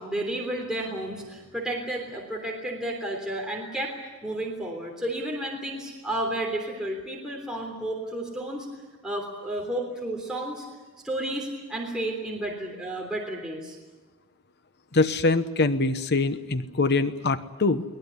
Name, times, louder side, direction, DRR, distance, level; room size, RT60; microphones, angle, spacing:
voice 1, 0.0-8.7 9.0-10.6 11.0-13.8, right 1 dB, 5° right, -2 dB, 3.3 m, -32 dB
voice 2, 14.9-17.8, left 3 dB, 50° left, 11 dB, 1.0 m, -24 dB
22.0 x 19.5 x 9.7 m, 1.3 s
head